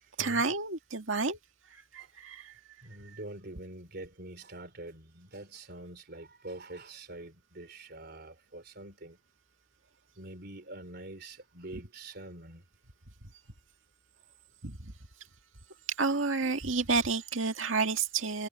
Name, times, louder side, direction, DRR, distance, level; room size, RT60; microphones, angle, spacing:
voice 1, 0.2-1.4 1.7-2.5 14.6-14.9 16.0-18.5, right 4 dB, 85° right, 2.1 m, -30 dB
voice 2, 2.8-9.2 10.2-12.6 16.1-16.5, right 2 dB, 55° right, 3.7 m, -45 dB
head